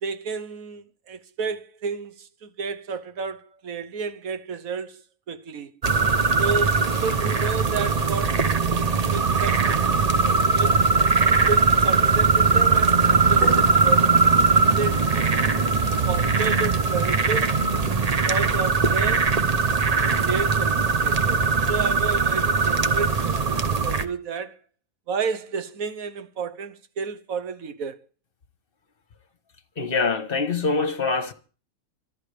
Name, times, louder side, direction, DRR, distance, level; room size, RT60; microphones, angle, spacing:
voice 1, 0.0-5.0 5.3-5.7 6.4-10.8 11.3-14.2 14.5-15.6 16.1-17.5 18.1-19.3 20.2-24.6 25.1-28.0, right 5 dB, 75° right, 1.5 m, -32 dB
sound 1, 5.8-24.1, right 4 dB, 35° right, 0.8 m, -20 dB
sound 2, 12.4-18.0, right 2 dB, 10° left, 3.9 m, -40 dB
voice 2, 29.8-31.3, left 4 dB, 40° left, 1.4 m, -24 dB
25.5 x 11.5 x 3.4 m
omnidirectional pair, 1.5 m